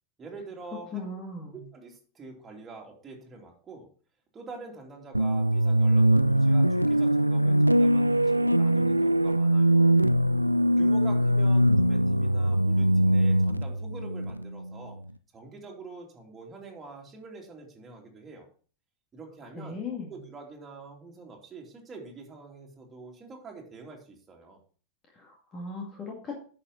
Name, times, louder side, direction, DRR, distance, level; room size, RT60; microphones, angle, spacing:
voice 1, 0.2-1.2 1.5-3.9 4.3-10.0 10.8-15.0 15.3-18.5 19.1-24.6, right 3 dB, 20° right, -1 dB, 2.8 m, -46 dB
voice 2, 0.9-1.6 19.6-20.1 25.1-26.4, left 3 dB, 25° left, -1 dB, 2.1 m, -37 dB
sound 1, 5.1-15.0, right 1 dB, 90° right, 0.4 m, -22 dB
9.9 x 6.8 x 3.9 m, 0.41 s
figure-of-eight pair, 90°, 0 cm